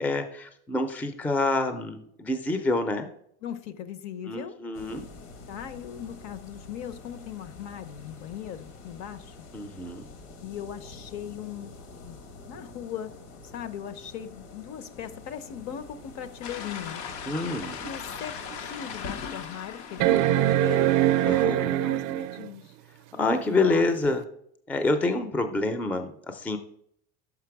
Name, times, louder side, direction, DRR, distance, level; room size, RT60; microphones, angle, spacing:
voice 1, 0.0-3.1 4.2-5.1 9.5-10.1 17.3-17.9 21.2-21.7 23.1-24.3 24.7-26.6, left 2 dB, 5° left, 8 dB, 0.4 m, -27 dB
voice 2, 3.4-4.6 5.5-9.3 10.4-11.8 12.0-12.2 12.5-13.1 13.4-17.0 17.8-20.9 21.2-22.7 23.5-23.8, left 9 dB, 55° left, 13 dB, 0.8 m, -39 dB
sound 1, 4.7-19.3, left 2 dB, 70° left, 1.5 m, -47 dB
sound 2, 16.4-21.5, left 7 dB, 85° left, 1.0 m, -39 dB
sound 3, 17.9-18.0 18.5-18.6 20.0-22.5 24.2-24.3, right 13 dB, 55° right, 0.4 m, -23 dB
5.8 x 5.6 x 4.7 m, 0.69 s
supercardioid pair, 130°, 33 cm